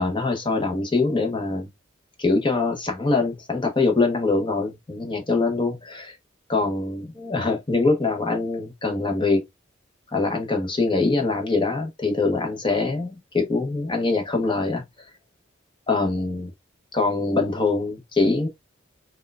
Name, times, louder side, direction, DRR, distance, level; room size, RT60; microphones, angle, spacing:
voice 1, 0.0-1.7 2.2-6.2 6.5-9.4 10.1-14.8 15.9-16.5 16.9-18.5, left 3 dB, 25° left, 0.8 m, -23 dB
4.3 x 2.2 x 2.2 m
head